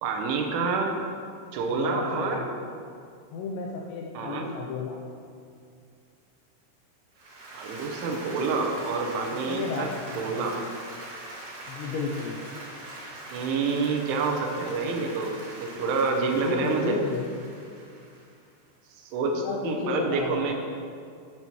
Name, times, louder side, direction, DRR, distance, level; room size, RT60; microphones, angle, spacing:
voice 1, 0.0-1.0 1.5-2.4 4.1-4.5 7.5-9.9 10.2-10.6 13.3-17.0 19.0-20.5, right 4 dB, 85° right, 2 dB, 3.2 m, -28 dB
voice 2, 1.7-2.5 3.3-5.0 9.5-10.5 11.7-12.4 16.2-17.2 19.3-20.5, left 4 dB, 85° left, -1 dB, 2.5 m, -33 dB
Applause, 7.1-18.5, right 1 dB, 55° right, 2.7 m, -42 dB
10.5 x 8.7 x 3.1 m, 2.3 s
omnidirectional pair, 5.7 m